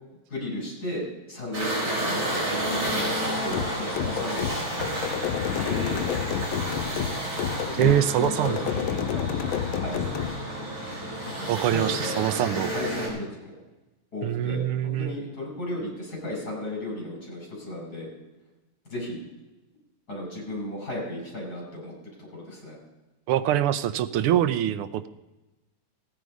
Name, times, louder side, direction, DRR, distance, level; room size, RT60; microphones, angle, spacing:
voice 1, 0.3-4.9 5.6-7.2 7.6-9.3 9.7-10.1 11.4-12.3 12.7-13.5 14.1-18.1 18.9-19.2 20.1-21.9 22.2-22.8, left 1 dB, 45° left, -2 dB, 5.7 m, -35 dB
sound 1, 1.5-13.1, right 1 dB, 60° right, 6.0 m, -31 dB
sound 2, 3.5-10.4, left 9 dB, 75° left, 1.4 m, -30 dB
voice 2, 7.8-8.6 11.5-12.7 14.2-15.2 23.3-25.1, right 11 dB, 85° right, 12 dB, 1.6 m, -24 dB
15.5 x 9.7 x 5.2 m, 1.1 s
omnidirectional pair, 2.4 m